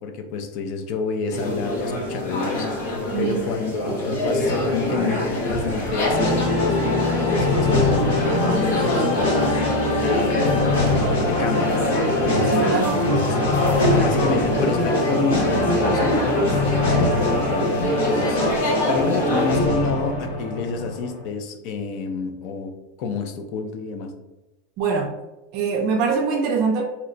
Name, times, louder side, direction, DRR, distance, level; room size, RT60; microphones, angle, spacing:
voice 1, 0.0-7.8 8.9-9.6 10.0-10.7 11.3-11.9 12.9-13.4 14.0-22.7 23.0-24.1, left 4 dB, 40° left, 7 dB, 0.4 m, -29 dB
sound 1, 1.3-19.7, left 1 dB, 70° left, 0.9 m, -24 dB
voice 2, 3.1-3.4 8.3-8.7 12.4-13.0 24.8-25.1 25.5-26.8, right 5 dB, 40° right, 1 dB, 0.4 m, -23 dB
sound 2, 6.0-21.3, left 2 dB, 85° left, 1.2 m, -23 dB
2.8 x 2.1 x 3.8 m, 1.0 s
supercardioid pair, 170°, 0 cm